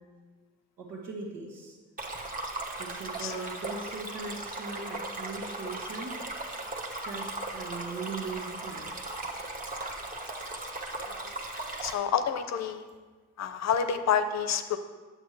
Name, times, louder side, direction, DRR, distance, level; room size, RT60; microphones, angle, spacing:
voice 1, 0.8-1.8 2.8-6.1 7.0-8.9, right 4 dB, 90° right, -8 dB, 1.7 m, -39 dB
Stream, 2.0-11.9, right 2 dB, 30° right, 1.1 m, -37 dB
voice 2, 11.8-12.8 13.4-14.8, left 7 dB, 60° left, 10 dB, 0.7 m, -28 dB
9.0 x 7.5 x 3.3 m, 1.4 s
cardioid pair, 90°, 30 cm